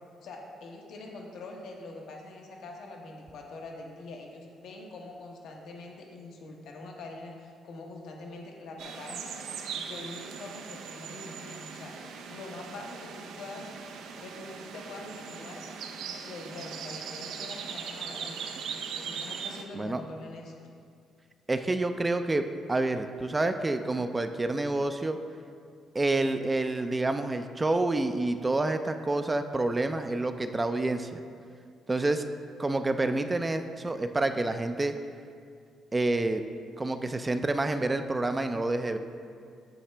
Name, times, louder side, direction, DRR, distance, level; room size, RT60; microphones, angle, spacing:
voice 1, 0.2-9.2 9.7-13.7 14.2-15.6 16.2-18.5 19.0-20.6, left 2 dB, 75° left, 0 dB, 1.1 m, -44 dB
sound 1, 8.8-19.6, right 6 dB, 80° right, 0.6 m, -40 dB
voice 2, 21.5-22.4 22.7-25.2 25.9-31.2 31.9-32.2 32.6-34.9 35.9-36.4 36.8-39.0, right 2 dB, 20° right, 8 dB, 0.4 m, -28 dB
8.5 x 7.1 x 3.3 m, 2.3 s
cardioid pair, 90°, 0 cm